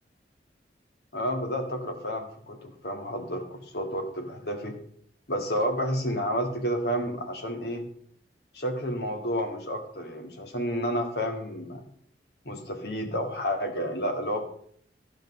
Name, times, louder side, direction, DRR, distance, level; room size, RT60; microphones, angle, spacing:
voice 1, 1.1-4.7 5.3-7.8 8.5-11.8 12.4-14.4, equal, 65° left, 4 dB, 1.7 m, -30 dB
12.0 x 5.2 x 6.3 m, 0.62 s
head